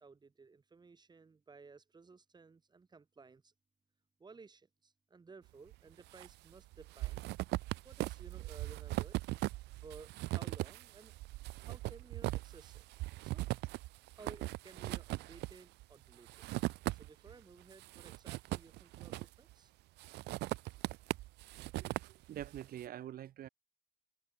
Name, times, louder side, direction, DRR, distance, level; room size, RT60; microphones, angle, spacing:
voice 1, 0.0-3.5 4.2-7.2 7.8-9.2 9.8-11.1 11.6-12.8 13.2-13.4 14.2-16.5 16.9-19.7, right 4 dB, 25° right, 4.7 m, -57 dB
sound 1, 5.7-6.3 6.6-17.3 17.7-19.5 20.0-22.7, right 19 dB, 85° right, 1.4 m, -40 dB
voice 2, 21.7-23.5, right 11 dB, 60° right, 3.3 m, -46 dB
cardioid pair, 110°, 17 cm